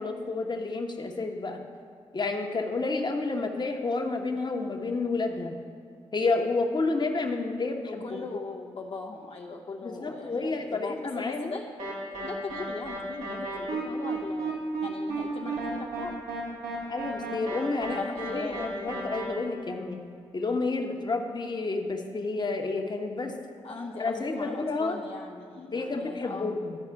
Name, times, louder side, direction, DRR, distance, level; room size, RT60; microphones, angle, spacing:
voice 1, 0.0-1.6 2.1-5.5 6.1-8.2 9.8-11.6 16.9-20.0 20.3-23.3 24.0-25.0 25.7-26.8, left 3 dB, 40° left, 3 dB, 1.0 m, -30 dB
voice 2, 7.8-11.6 12.1-16.1 17.9-18.9 23.6-26.6, left 3 dB, 65° left, -2 dB, 0.8 m, -39 dB
sound 1, 11.8-19.2, right 2 dB, 85° right, 1.9 m, -33 dB
11.5 x 4.8 x 4.6 m, 2.4 s
supercardioid pair, 45°, 11 cm